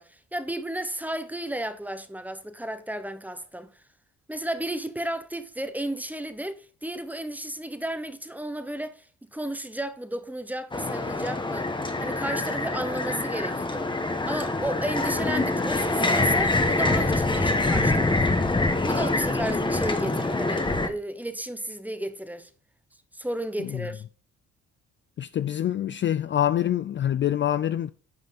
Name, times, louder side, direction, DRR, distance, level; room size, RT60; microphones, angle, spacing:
voice 1, 0.0-3.8 4.3-11.7 12.0-13.9 14.2-18.2 18.8-22.5 23.1-24.0, right 1 dB, 5° right, 0.9 m, -33 dB
sound 1, 10.7-20.9, left 2 dB, 15° left, 1.2 m, -25 dB
voice 2, 25.2-27.9, left 11 dB, 40° left, 0.4 m, -25 dB
9.3 x 5.3 x 4.0 m
cardioid pair, 90°, 30 cm